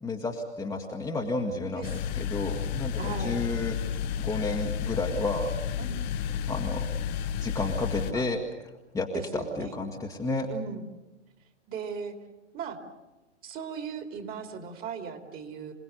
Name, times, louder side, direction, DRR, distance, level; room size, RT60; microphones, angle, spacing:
voice 1, 0.0-3.8 4.2-5.5 6.5-6.9 7.4-8.4 8.9-9.1 9.3-10.5, left 3 dB, 10° left, 0 dB, 1.7 m, -31 dB
voice 2, 1.7-2.2 2.9-3.4 5.8-6.0 8.1-8.3 9.1-9.7 10.5-10.9 11.7-12.2 12.5-12.8 13.4-15.7, right 5 dB, 25° right, 5 dB, 2.8 m, -37 dB
sound 1, 1.8-8.1, left 8 dB, 40° left, 0.9 m, -32 dB
27.5 x 18.5 x 8.0 m, 1.1 s
figure-of-eight pair, 110°, 36 cm